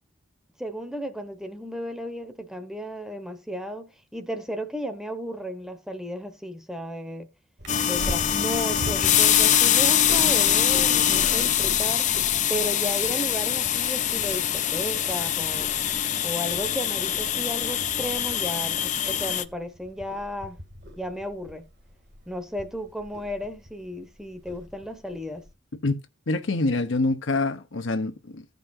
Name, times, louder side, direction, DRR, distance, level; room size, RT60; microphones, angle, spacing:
voice 1, 0.6-7.3 7.8-12.1 12.5-15.7 16.2-20.6 21.0-21.6 22.3-25.4, equal, 5° right, 0.9 m, -34 dB
Purr, 7.6-25.5, equal, 60° right, 1.9 m, -42 dB
sound 1, 7.7-19.4, left 10 dB, 40° left, 0.5 m, -23 dB
voice 2, 26.3-28.4, left 2 dB, 75° left, 0.9 m, -25 dB
16.0 x 5.3 x 2.6 m
head